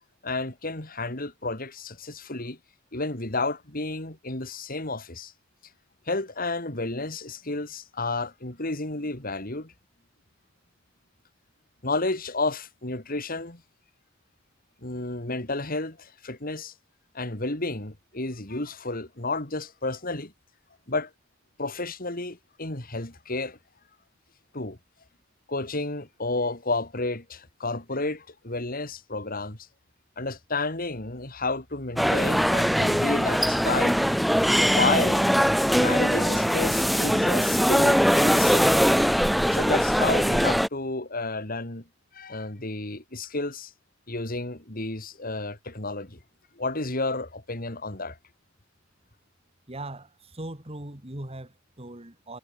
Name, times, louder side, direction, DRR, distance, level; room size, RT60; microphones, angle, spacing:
voice 1, 0.2-2.6 2.9-5.3 6.1-9.7 11.8-13.6 14.8-16.7 17.1-20.3 20.9-21.1 21.6-23.6 24.5-24.8 25.5-29.6 30.2-34.0 34.6-35.3 35.7-38.7 39.5-41.8 42.1-43.7 44.1-46.2 46.6-48.2, left 3 dB, 45° left, 3.7 m, -31 dB
sound 1, 32.0-40.7, equal, ahead, 0.9 m, -21 dB
voice 2, 49.7-52.4, right 1 dB, 30° right, 2.5 m, -39 dB
head